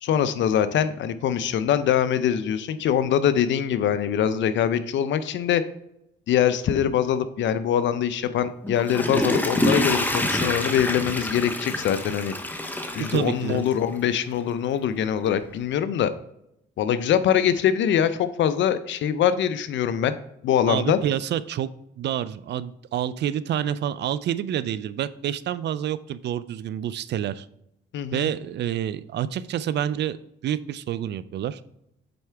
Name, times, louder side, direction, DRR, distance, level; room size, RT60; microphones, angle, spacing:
voice 1, 0.0-5.6 6.3-12.3 12.9-16.1 16.8-20.1 20.4-21.0 27.9-28.3, left 9 dB, 70° left, 13 dB, 0.6 m, -23 dB
Water / Toilet flush, 8.6-13.9 14.4-14.5, left 1 dB, 10° left, 0.8 m, -27 dB
voice 2, 13.0-13.7 20.7-21.7 22.0-27.5 28.1-30.2 30.4-31.6, right 10 dB, 60° right, 16 dB, 0.4 m, -28 dB
7.8 x 4.6 x 3.4 m, 0.79 s
cardioid pair, 90°, 20 cm